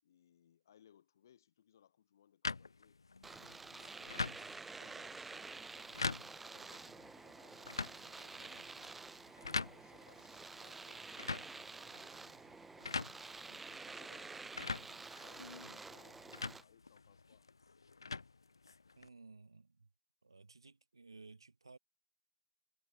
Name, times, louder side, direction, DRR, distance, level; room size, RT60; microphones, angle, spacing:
voice 1, 0.0-3.0 3.3-4.4 4.8-9.0 9.7-17.5, left 9 dB, 50° left, 5.4 m, -68 dB
sound 1, 2.4-19.1, left 4 dB, 75° left, 2.4 m, -45 dB
Domestic sounds home sounds, 3.2-16.6, right 3 dB, 5° right, 1.0 m, -50 dB
voice 2, 19.0-19.9 20.2-21.8, right 3 dB, 80° right, 4.0 m, -57 dB
figure-of-eight pair, 135°, 2 cm